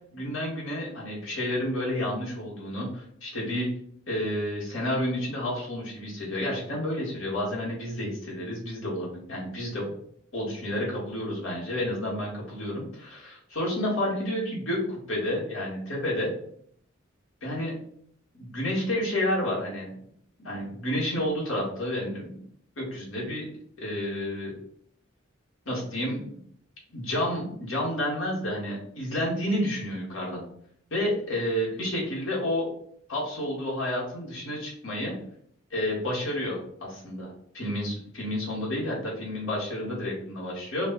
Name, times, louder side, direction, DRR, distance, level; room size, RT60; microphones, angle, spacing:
voice 1, 0.1-3.7 4.1-9.9 10.3-16.3 17.4-17.7 18.3-19.9 20.4-22.4 22.8-23.5 23.8-24.5 25.7-26.4 26.9-30.4 30.9-32.7 33.1-35.1 35.7-40.9, left 1 dB, 80° left, -4 dB, 2.0 m, -30 dB
5.1 x 2.5 x 4.1 m, 0.66 s
head